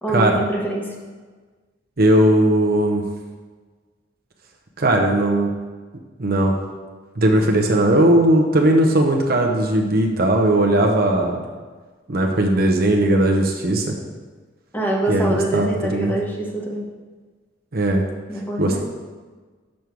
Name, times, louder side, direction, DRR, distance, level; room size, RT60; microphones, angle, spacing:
voice 1, 0.0-0.9 14.7-16.9 18.3-18.8, right 1 dB, 10° left, -2 dB, 1.0 m, -24 dB
voice 2, 2.0-3.0 4.8-5.5 6.2-6.5 7.2-11.4 12.1-14.0 15.1-16.1 17.7-18.0 18.6-18.8, right 1 dB, 55° right, 2 dB, 0.8 m, -18 dB
6.4 x 5.4 x 4.6 m, 1.4 s
head